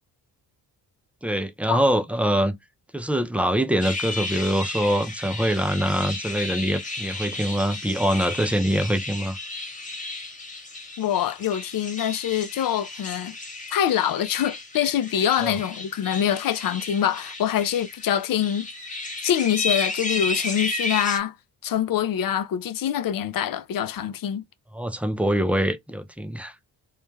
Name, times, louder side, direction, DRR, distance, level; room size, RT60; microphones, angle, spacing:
voice 1, 1.2-2.5 2.9-9.4 15.4-15.5 24.7-26.5, equal, 5° right, 0.4 m, -24 dB
sound 1, 3.8-21.2, left 3 dB, 15° left, 0.9 m, -33 dB
voice 2, 11.0-13.4 13.7-18.7 19.2-21.3 21.6-24.4, left 10 dB, 50° left, 0.5 m, -25 dB
2.3 x 2.1 x 3.1 m
supercardioid pair, 55°, 45 cm